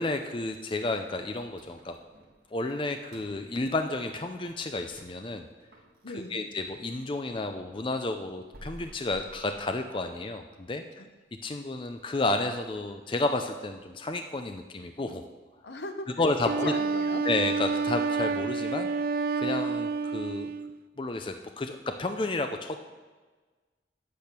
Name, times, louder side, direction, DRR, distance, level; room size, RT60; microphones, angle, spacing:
voice 1, 0.0-2.0 2.5-5.5 6.3-11.0 11.4-15.2 16.2-16.7 17.2-18.9 19.4-20.5 21.0-22.8, left 2 dB, 30° left, 6 dB, 0.5 m, -31 dB
sound 1, 1.1-7.1 7.5-10.3 10.7-10.8 11.2-11.4 11.9-12.2 12.5-12.6 13.2-13.3, right 1 dB, 70° right, 1.6 m, -54 dB
voice 2, 6.0-6.5 11.0-11.1 15.6-16.2 16.6-17.3, left 1 dB, 80° left, 6 dB, 1.0 m, -39 dB
Wind instrument woodwind instrument, 16.4-20.8, right 4 dB, 55° right, 0.3 m, -29 dB
8.6 x 8.4 x 6.0 m, 1.3 s
head